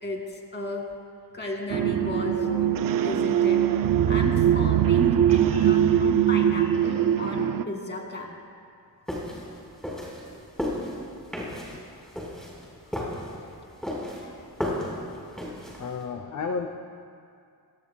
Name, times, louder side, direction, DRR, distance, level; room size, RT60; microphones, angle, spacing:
voice 1, 0.0-0.8 1.3-2.8 3.0-3.6 4.1-8.4 10.3-10.9 13.3-14.4 15.8-15.9, left 2 dB, 25° left, 1 dB, 2.3 m, -35 dB
sound 1, 1.7-7.6, right 10 dB, 60° right, 0.5 m, -22 dB
sound 2, 9.1-16.0, left 1 dB, ahead, 4.5 m, -34 dB
voice 2, 15.8-16.7, left 5 dB, 45° left, 5 dB, 0.8 m, -33 dB
28.5 x 17.5 x 2.3 m, 2.4 s
wide cardioid pair, 130°, 39 cm